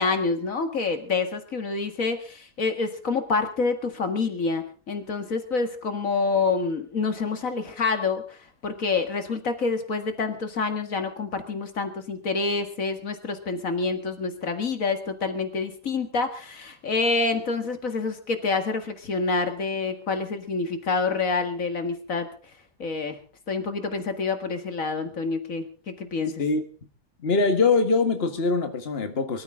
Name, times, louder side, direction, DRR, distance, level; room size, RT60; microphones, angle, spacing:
voice 1, 0.0-22.3 22.8-23.2 23.5-26.4, left 4 dB, 70° left, 2.3 m, -27 dB
voice 2, 27.2-29.4, left 4 dB, 45° left, 1.8 m, -23 dB
23.0 x 14.0 x 3.7 m
omnidirectional pair, 1.5 m